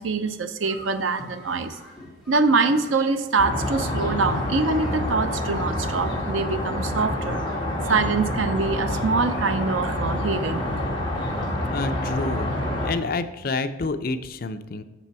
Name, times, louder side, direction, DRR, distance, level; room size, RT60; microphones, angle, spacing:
voice 1, 0.0-1.8 2.3-7.4 7.9-10.6, right 4 dB, 90° right, 10 dB, 0.6 m, -24 dB
sound 1, 0.6-5.8, equal, ahead, 2.1 m, -46 dB
sound 2, 3.4-12.9, left 1 dB, 25° left, 1.3 m, -27 dB
voice 2, 11.7-12.5 12.8-14.8, left 3 dB, 50° left, 9 dB, 0.5 m, -28 dB
7.0 x 6.8 x 4.6 m, 1.0 s
head